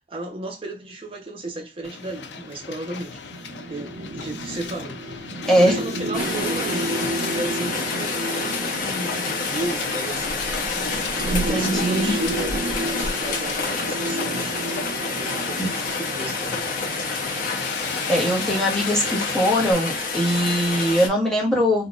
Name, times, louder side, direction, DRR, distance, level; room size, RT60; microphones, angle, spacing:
voice 1, 0.1-3.2 3.7-5.3 5.5-10.4 11.1-14.7 15.0-16.7, right 2 dB, 30° right, 0.9 m, -34 dB
Hiss, 1.8-19.7, left 4 dB, 75° left, 0.5 m, -35 dB
sound 1, 3.2-15.7, right 2 dB, 65° right, 0.5 m, -32 dB
voice 2, 5.5-5.8 11.3-12.1 15.6-15.7 18.1-21.9, equal, 5° left, 1.0 m, -21 dB
Rain, 6.1-21.1, left 3 dB, 50° left, 0.8 m, -28 dB
3.9 x 2.3 x 2.4 m
head